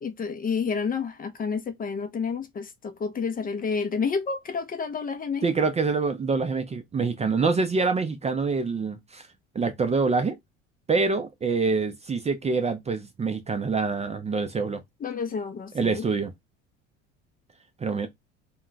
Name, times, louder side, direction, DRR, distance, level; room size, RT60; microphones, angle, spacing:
voice 1, 0.0-5.5 15.0-16.1, left 5 dB, 25° left, 0.5 m, -30 dB
voice 2, 5.4-9.3 9.5-10.4 10.9-14.8 15.7-16.3 17.8-18.1, right 4 dB, 20° right, 0.5 m, -25 dB
2.2 x 2.2 x 3.8 m
hypercardioid pair, 75°, 32 cm